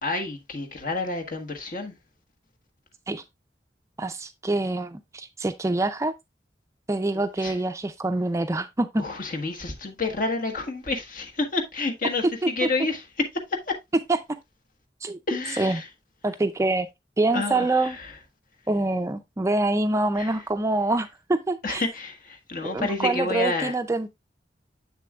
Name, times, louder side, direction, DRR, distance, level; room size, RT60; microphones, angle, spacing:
voice 1, 0.0-1.9 7.4-7.6 9.0-13.0 13.5-13.8 15.3-15.9 17.3-18.1 20.1-20.4 21.6-23.7, left 3 dB, 50° left, 1.4 m, -29 dB
voice 2, 4.0-6.1 6.9-9.0 12.4-12.5 14.1-14.2 15.0-15.2 15.6-15.8 16.2-16.9 17.2-18.0 18.7-21.8 22.6-24.1, right 2 dB, 15° right, 0.4 m, -25 dB
7.7 x 6.7 x 2.3 m
head